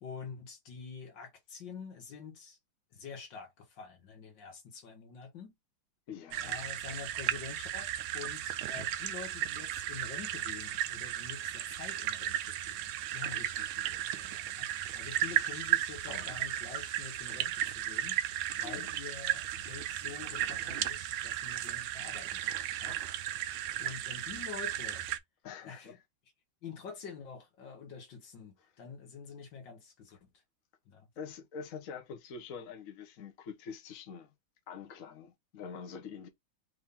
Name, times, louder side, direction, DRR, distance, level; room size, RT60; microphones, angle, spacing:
voice 1, 0.0-2.6 2.9-5.5 6.4-18.2 18.5-22.5 22.8-23.0 23.8-25.0 25.6-25.9 26.6-30.3 30.9-31.1, left 6 dB, 70° left, 2.0 m, -47 dB
voice 2, 6.1-6.6 15.2-15.7 16.1-16.4 18.6-18.9 23.7-23.8 25.4-26.0 31.2-34.3 34.7-36.3, left 6 dB, 50° left, 1.2 m, -45 dB
sound 1, 6.3-25.2, right 12 dB, 85° right, 1.4 m, -35 dB
4.4 x 2.8 x 3.5 m
omnidirectional pair, 2.1 m